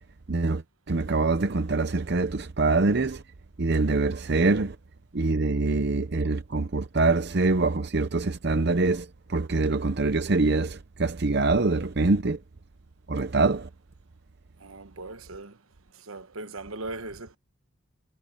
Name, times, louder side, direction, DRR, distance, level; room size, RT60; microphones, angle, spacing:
voice 1, 0.3-0.6 0.9-3.2 3.6-4.8 5.1-12.4 13.1-13.7, right 3 dB, 50° right, 0.7 m, -24 dB
voice 2, 14.6-15.6 15.9-17.4, right 2 dB, 80° right, 1.3 m, -39 dB
head